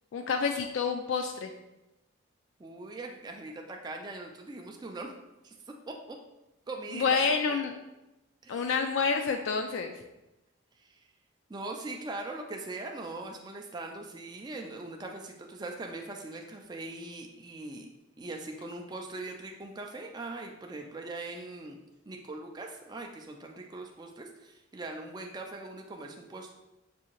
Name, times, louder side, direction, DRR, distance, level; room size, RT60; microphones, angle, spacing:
voice 1, 0.1-1.5 6.9-7.7 8.5-9.9, left 5 dB, 65° left, 5 dB, 0.3 m, -28 dB
voice 2, 2.6-5.1 5.4-5.5 5.9-6.2 6.7-7.6 8.4-8.7 10.8-11.0 11.5-17.9 18.2-21.8 22.1-26.5, right 2 dB, 20° right, 2 dB, 0.3 m, -41 dB
6.1 x 2.7 x 2.9 m, 0.98 s
head